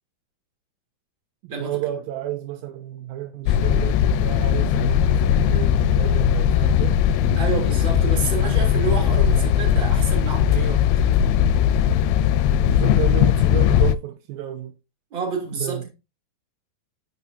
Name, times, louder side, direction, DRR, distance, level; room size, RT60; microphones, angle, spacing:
voice 1, 1.4-7.5 12.6-14.8 15.6-15.9, right 13 dB, 80° right, 2.2 m, -32 dB
sound 1, 3.5-14.0, left 9 dB, 85° left, 2.5 m, -19 dB
voice 2, 7.4-10.9 15.1-15.9, right 5 dB, 30° right, 3.3 m, -29 dB
9.8 x 6.0 x 2.7 m
omnidirectional pair, 4.4 m